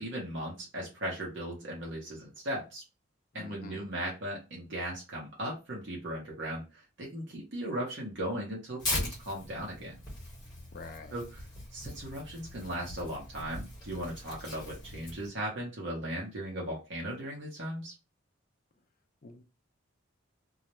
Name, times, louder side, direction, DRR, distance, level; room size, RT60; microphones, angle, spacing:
voice 1, 0.0-2.8 3.3-10.0 11.1-11.3 11.7-17.9, right 1 dB, 60° right, -3 dB, 0.8 m, -37 dB
voice 2, 3.3-3.9 10.7-11.2 19.2-19.4, left 3 dB, 45° left, 6 dB, 0.5 m, -47 dB
Tearing, 8.8-15.3, left 1 dB, 20° left, 1.1 m, -40 dB
2.3 x 2.1 x 2.9 m, 0.27 s
head